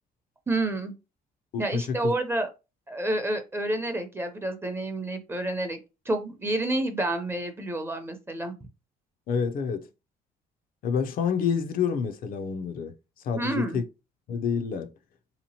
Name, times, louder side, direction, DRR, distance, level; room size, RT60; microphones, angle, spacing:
voice 1, 0.5-0.9 1.6-2.5 2.9-5.8 6.1-8.5 13.3-13.8, right 2 dB, 15° right, 0.6 m, -29 dB
voice 2, 1.5-2.1 9.3-9.9 10.8-12.9 13.2-13.8 14.3-14.9, left 6 dB, 55° left, 0.5 m, -28 dB
3.5 x 2.9 x 2.8 m
cardioid pair, 110°, 17 cm